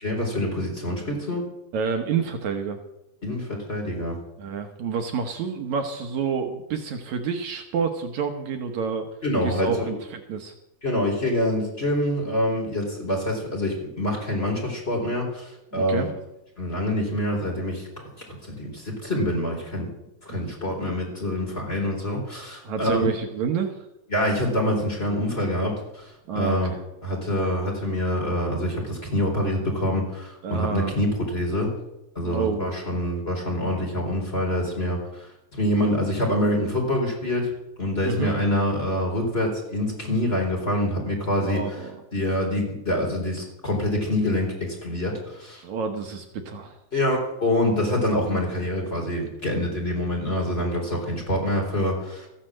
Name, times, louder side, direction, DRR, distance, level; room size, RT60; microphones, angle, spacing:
voice 1, 0.0-1.4 3.2-4.2 9.2-10.0 10.8-16.1 16.6-17.9 18.5-19.9 20.2-23.0 24.1-26.7 27.0-31.7 32.1-37.5 37.8-41.8 42.1-45.6 46.9-52.3, left 1 dB, 20° left, 0 dB, 4.3 m, -26 dB
voice 2, 1.7-2.8 4.4-9.1 9.4-10.5 15.7-16.1 20.3-20.4 22.6-23.8 26.3-26.8 30.4-31.0 32.2-32.7 38.0-38.3 41.4-42.0 45.6-46.8, right 6 dB, 70° right, 5 dB, 2.3 m, -28 dB
14.5 x 10.0 x 7.6 m, 0.89 s
omnidirectional pair, 3.6 m